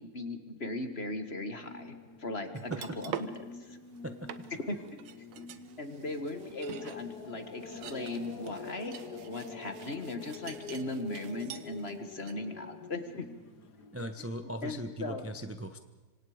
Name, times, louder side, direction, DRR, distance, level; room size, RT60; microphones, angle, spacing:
voice 1, 0.0-2.0 2.2-3.8 4.7-5.1 5.4-5.5 5.8-8.9 9.3-13.2 14.6-15.2, left 2 dB, 30° left, 8 dB, 1.8 m, -38 dB
sound 1, 1.6-14.3, left 5 dB, 55° left, 2.1 m, -47 dB
sound 2, 2.6-3.4 3.9-4.0 4.3-11.9 12.2-12.3, right 9 dB, 80° right, 1.8 m, -45 dB
voice 2, 13.9-15.8, right 1 dB, 15° right, 8 dB, 0.5 m, -39 dB
26.0 x 25.5 x 5.1 m, 1.3 s
omnidirectional pair, 2.2 m